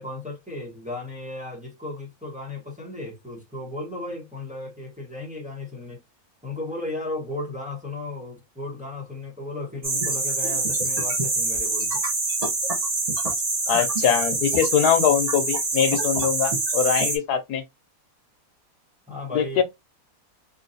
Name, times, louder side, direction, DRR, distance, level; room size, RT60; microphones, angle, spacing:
voice 1, 0.0-6.0 6.4-12.0 19.1-19.6, left 2 dB, 5° right, 1.0 m, -35 dB
sound 1, 9.8-17.2, right 3 dB, 30° right, 0.8 m, -25 dB
voice 2, 13.7-17.6 19.3-19.6, left 8 dB, 85° left, 1.2 m, -22 dB
3.8 x 2.5 x 2.6 m
omnidirectional pair, 1.6 m